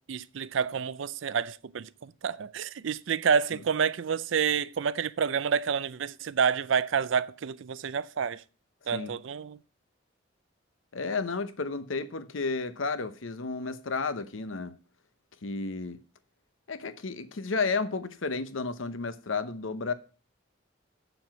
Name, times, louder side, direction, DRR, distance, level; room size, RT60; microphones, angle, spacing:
voice 1, 0.1-8.4 8.9-9.6, right 6 dB, 70° right, 0.5 m, -29 dB
voice 2, 10.9-14.7 15.4-16.0 16.7-19.9, left 4 dB, 80° left, 0.8 m, -32 dB
7.8 x 6.9 x 5.9 m
head